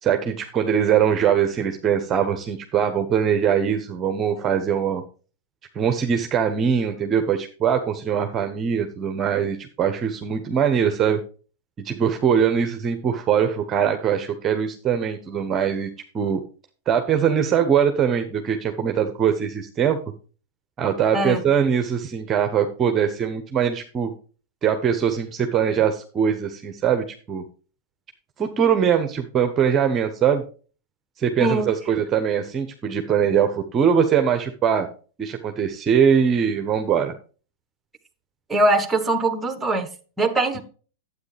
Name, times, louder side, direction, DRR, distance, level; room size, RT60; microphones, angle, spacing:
voice 1, 0.0-5.0 5.7-11.2 11.8-16.4 16.9-20.0 20.8-24.1 24.6-27.4 28.4-30.4 31.2-34.9 35.2-37.1 40.5-40.6, right 8 dB, 25° right, 0.9 m, -22 dB
voice 2, 31.4-31.7 38.5-39.9 40.2-40.6, right 2 dB, 10° right, 1.3 m, -21 dB
9.5 x 8.4 x 3.3 m
hypercardioid pair, 125°, 0 cm